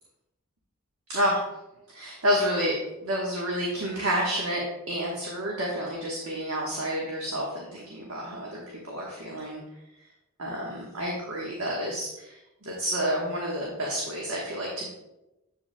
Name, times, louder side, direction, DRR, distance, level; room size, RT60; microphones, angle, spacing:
voice 1, 1.1-1.4 1.9-2.8 3.0-8.6 8.9-9.6 10.4-14.9, equal, 70° right, -3 dB, 1.3 m, -29 dB
7.8 x 7.3 x 2.2 m, 0.94 s
head